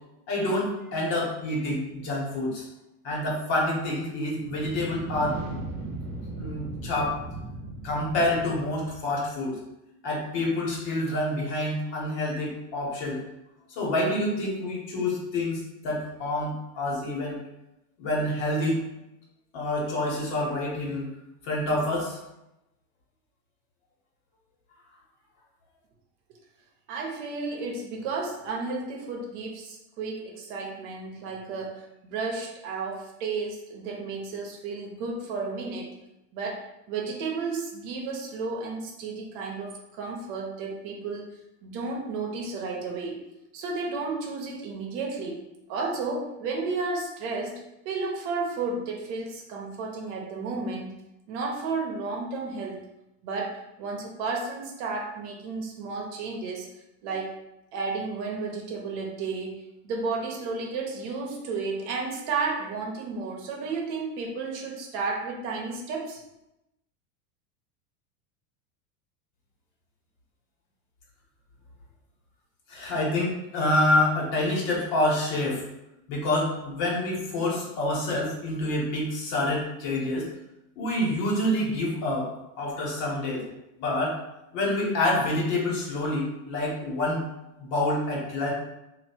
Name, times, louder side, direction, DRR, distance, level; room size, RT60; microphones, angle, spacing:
voice 1, 0.3-2.7 3.0-5.4 6.4-7.1 7.8-9.6 10.0-13.2 13.7-17.4 18.0-18.8 19.5-21.1 21.4-22.2 72.7-75.6 76.1-80.3 80.7-82.3 82.6-83.4 83.8-84.1 84.5-87.2 87.6-88.5, left 1 dB, 50° left, -3 dB, 1.5 m, -27 dB
sound 1, 4.3-9.2, right 2 dB, 30° right, 1.2 m, -37 dB
voice 2, 26.9-35.9 36.3-43.2 43.5-45.4 45.7-51.0 51.3-52.9 53.2-56.7 57.0-57.4 57.7-66.2, right 4 dB, 50° right, 0 dB, 0.9 m, -32 dB
3.0 x 2.7 x 4.4 m, 0.90 s
supercardioid pair, 150°, 44 cm